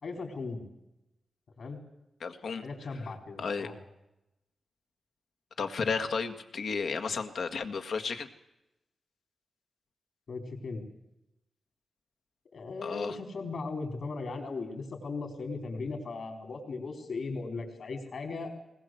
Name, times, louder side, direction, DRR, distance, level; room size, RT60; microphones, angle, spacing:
voice 1, 0.0-0.7 1.6-1.8 2.6-3.8 10.3-10.9 12.5-18.5, left 3 dB, 55° left, 5 dB, 4.4 m, -37 dB
voice 2, 2.2-2.6 3.4-3.7 5.6-8.3 12.8-13.2, left 5 dB, 75° left, 7 dB, 1.8 m, -33 dB
20.5 x 20.5 x 7.9 m, 0.89 s
wide cardioid pair, 165°, 0 cm